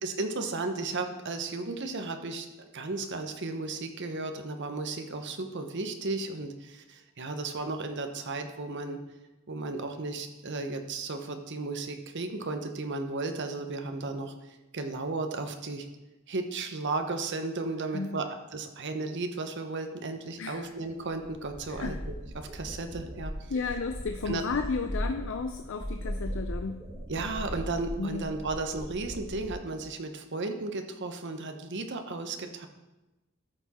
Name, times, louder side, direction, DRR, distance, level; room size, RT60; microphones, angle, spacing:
voice 1, 0.0-9.0 9.5-15.9 16.3-18.3 18.5-23.3 24.2-24.4 27.1-32.7, right 3 dB, 55° right, 6 dB, 0.9 m, -34 dB
sound 1, 20.7-20.8 21.0-29.5, equal, 15° right, 2.1 m, -38 dB
voice 2, 21.7-22.0 23.5-26.8 28.0-28.2, left 4 dB, 60° left, 6 dB, 0.5 m, -33 dB
13.5 x 6.0 x 4.2 m, 1.0 s
head